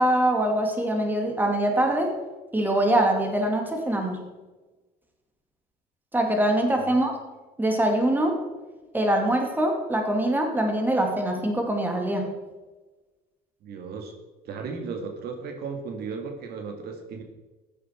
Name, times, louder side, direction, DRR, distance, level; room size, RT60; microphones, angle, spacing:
voice 1, 0.0-2.1 2.5-4.2 6.1-7.1 7.6-8.4 8.9-12.3, right 1 dB, 10° right, 2 dB, 2.5 m, -23 dB
voice 2, 13.6-14.1 14.4-17.2, right 5 dB, 70° right, 4 dB, 2.1 m, -35 dB
14.5 x 10.0 x 4.5 m, 1.2 s
cardioid pair, 110°, 17 cm